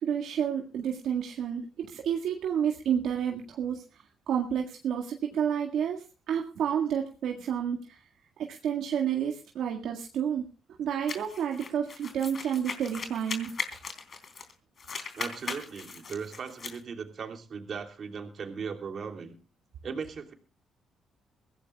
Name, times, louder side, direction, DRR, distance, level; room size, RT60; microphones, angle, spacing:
voice 1, 0.0-8.0 8.4-10.5 10.8-13.6, right 8 dB, 75° right, 2 dB, 1.8 m, -30 dB
sound 1, 11.1-14.5 14.8-16.8, left 5 dB, 45° left, 3.4 m, -38 dB
voice 2, 15.2-19.4 19.8-20.3, right 6 dB, 50° right, 4 dB, 3.1 m, -38 dB
23.0 x 16.5 x 2.3 m, 0.33 s
cardioid pair, 90°, 0 cm